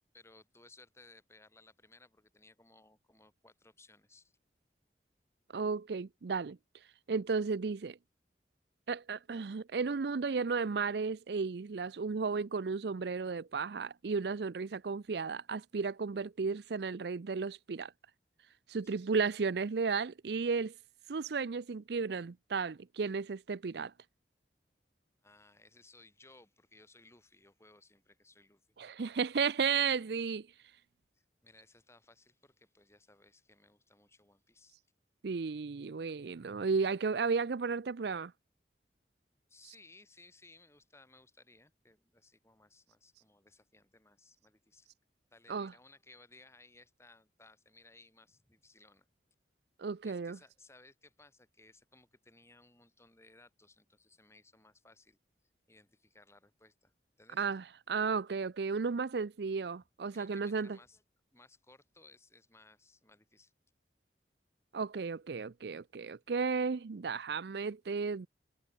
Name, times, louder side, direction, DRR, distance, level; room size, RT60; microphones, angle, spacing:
voice 1, 0.1-4.4 18.8-19.0 25.2-28.6 31.1-34.8 37.2-37.4 39.5-44.9 45.3-49.1 50.0-55.2 55.7-56.9 57.2-57.5 60.1-61.0 61.3-63.5, left 2 dB, 15° left, 7.5 m, -61 dB
voice 2, 5.5-6.6 7.1-8.0 8.9-17.9 18.7-20.7 21.1-23.9 28.8-30.5 35.2-38.3 45.5-45.7 49.8-50.4 57.4-60.8 64.7-68.3, right 5 dB, 65° right, 0.5 m, -34 dB
head